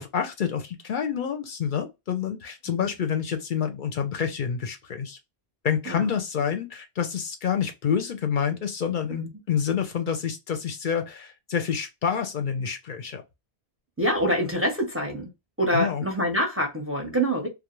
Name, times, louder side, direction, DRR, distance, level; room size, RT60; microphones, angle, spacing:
voice 1, 0.0-5.2 5.6-13.2 15.7-16.0, left 7 dB, 60° left, 0.6 m, -28 dB
voice 2, 14.0-15.3 15.6-17.5, equal, 15° right, 0.6 m, -26 dB
2.4 x 2.0 x 3.0 m
omnidirectional pair, 1.1 m